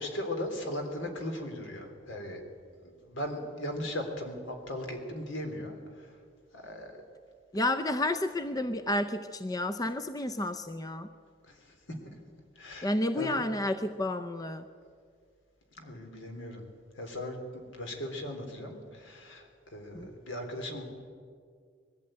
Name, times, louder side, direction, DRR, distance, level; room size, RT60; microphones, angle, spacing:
voice 1, 0.0-2.4 2.8-6.2 6.5-6.9 11.4-12.2 12.6-12.9 13.2-13.4 15.7-16.7 17.0-20.8, left 1 dB, 75° left, 4 dB, 3.5 m, -38 dB
voice 2, 7.5-11.1 12.8-14.7 19.9-20.1, left 1 dB, 20° left, 10 dB, 0.6 m, -31 dB
21.0 x 14.5 x 9.0 m, 2.1 s
head